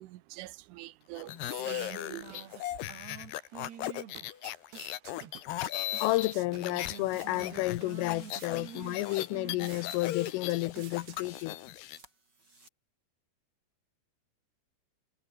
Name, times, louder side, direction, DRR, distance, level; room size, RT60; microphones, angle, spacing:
voice 1, 0.0-2.5, right 17 dB, 80° right, 3.5 m, -45 dB
sound 1, 1.1-11.6, right 10 dB, 60° right, 4.2 m, -49 dB
sound 2, 1.2-7.0 7.3-12.0, left 13 dB, 65° left, 3.0 m, -38 dB
sound 3, 5.9-12.7, right 2 dB, 20° right, 7.7 m, -60 dB
voice 2, 6.0-11.9, left 20 dB, 90° left, 3.4 m, -31 dB
omnidirectional pair, 5.7 m